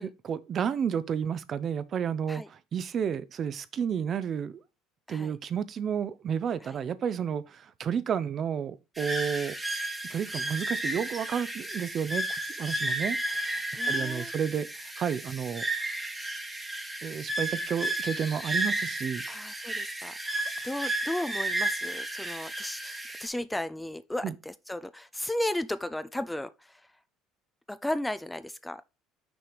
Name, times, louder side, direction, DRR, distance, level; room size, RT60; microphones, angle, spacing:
voice 1, 0.0-4.6 5.1-9.5 10.1-13.6 13.9-14.7 15.0-15.6 17.0-19.2 24.2-24.3, right 7 dB, 40° right, 0.6 m, -31 dB
sound 1, 9.0-23.3, right 1 dB, 10° right, 1.1 m, -33 dB
voice 2, 13.7-14.3 19.3-26.8 27.7-28.8, left 1 dB, 5° left, 0.4 m, -35 dB
6.2 x 4.6 x 5.0 m
cardioid pair, 120°, 0 cm